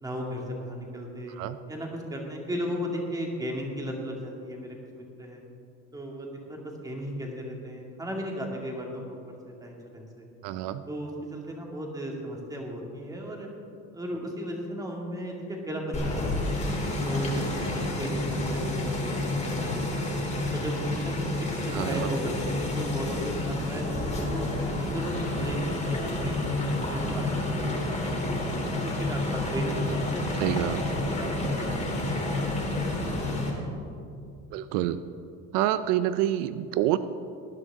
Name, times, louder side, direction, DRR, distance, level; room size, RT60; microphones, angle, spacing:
voice 1, 0.0-1.4 1.7-5.4 5.9-9.2 9.5-10.2 10.9-13.5 13.9-16.6 17.0-17.5 17.7-20.1 20.5-24.5 24.9-27.3 27.6-28.3 28.8-30.6 31.1-32.3, equal, 10° right, 0 dB, 2.3 m, -36 dB
voice 2, 10.4-10.8 21.7-22.1 30.4-30.8 34.5-35.0 35.5-37.0, right 13 dB, 85° right, 13 dB, 0.6 m, -27 dB
sound 1, 15.9-33.5, left 1 dB, 20° left, 3.0 m, -29 dB
19.0 x 11.0 x 3.7 m, 2.5 s
cardioid pair, 135°, 31 cm